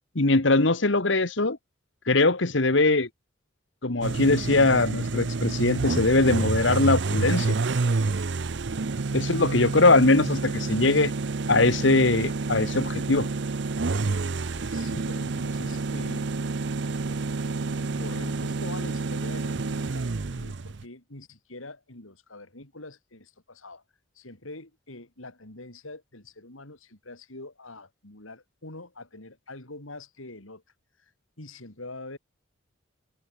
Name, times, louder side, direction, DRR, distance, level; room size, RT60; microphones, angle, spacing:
voice 1, 0.1-1.6 2.1-3.1 3.8-7.5 9.1-11.1 11.5-13.3, left 2 dB, 65° left, 1.6 m, -21 dB
sound 1, 4.0-20.8, right 3 dB, 60° right, 0.6 m, -29 dB
voice 2, 14.2-16.3 17.9-20.0 20.3-23.8 24.2-30.6 31.0-31.1 31.4-32.2, left 2 dB, 90° left, 4.2 m, -44 dB
head